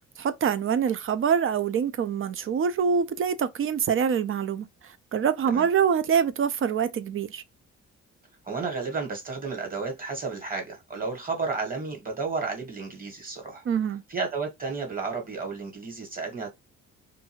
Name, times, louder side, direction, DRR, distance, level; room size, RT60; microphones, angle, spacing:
voice 1, 0.2-4.7 5.1-7.4 13.7-14.0, right 7 dB, 45° right, 0.4 m, -25 dB
voice 2, 8.4-13.6 14.1-16.5, right 4 dB, 30° right, 1.5 m, -32 dB
2.6 x 2.4 x 2.9 m
cardioid pair, 90°, 30 cm